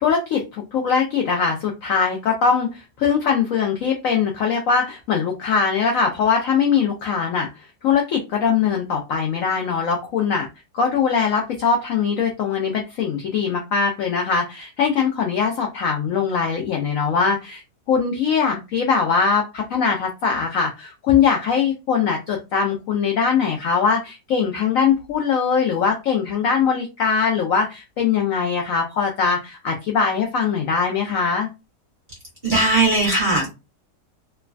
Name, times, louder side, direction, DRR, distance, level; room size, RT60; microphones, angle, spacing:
voice 1, 0.0-7.5 7.8-10.5 10.7-17.6 17.9-31.5, left 6 dB, 70° left, 1 dB, 0.8 m, -21 dB
voice 2, 32.4-33.5, right 2 dB, 35° right, -4 dB, 1.0 m, -18 dB
3.0 x 2.2 x 2.4 m, 0.26 s
omnidirectional pair, 1.9 m